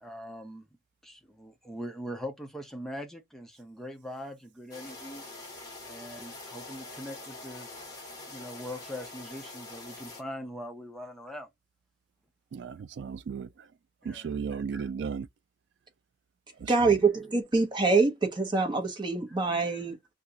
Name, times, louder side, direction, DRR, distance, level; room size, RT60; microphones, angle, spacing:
voice 1, 0.0-0.7 1.0-5.2 5.8-7.7 8.3-11.5 14.0-14.3 14.7-14.9, equal, ahead, 0.5 m, -41 dB
sound 1, 4.7-10.2, left 2 dB, 20° left, 1.4 m, -44 dB
voice 2, 12.5-13.7 14.0-15.3 16.6-17.0, right 6 dB, 65° right, 0.3 m, -35 dB
voice 3, 16.7-20.0, right 4 dB, 25° right, 0.9 m, -25 dB
2.7 x 2.4 x 3.8 m
head